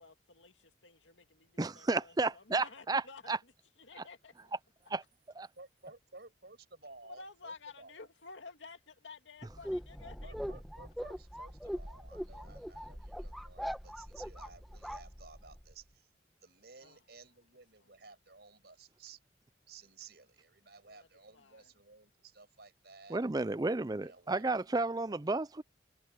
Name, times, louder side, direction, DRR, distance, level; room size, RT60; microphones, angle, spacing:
voice 1, 0.0-4.5 7.0-10.3 12.4-12.6 16.8-17.0 17.8-17.9 20.8-21.7, left 3 dB, 85° left, 2.3 m, -53 dB
voice 2, 1.6-3.0 3.3-3.4 4.9-5.0 5.4-5.5 23.1-25.6, right 3 dB, 20° right, 0.5 m, -32 dB
voice 3, 5.6-8.1 10.2-16.1 16.4-19.2 19.7-23.2 24.0-25.4, right 4 dB, 60° right, 6.1 m, -56 dB
sound 1, 9.5-15.7, equal, ahead, 1.1 m, -42 dB
head